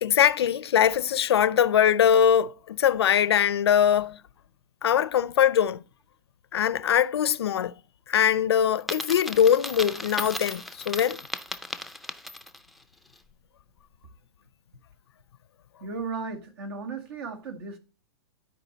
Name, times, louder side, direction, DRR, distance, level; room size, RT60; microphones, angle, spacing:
voice 1, 0.0-4.2 4.8-5.8 6.5-7.7 8.1-11.2, left 9 dB, 90° left, 0.5 m, -22 dB
Coin (dropping), 8.8-12.7, left 1 dB, ahead, 0.4 m, -36 dB
voice 2, 15.8-17.8, right 4 dB, 70° right, 2.0 m, -35 dB
12.0 x 4.8 x 3.9 m
hypercardioid pair, 130°, 13 cm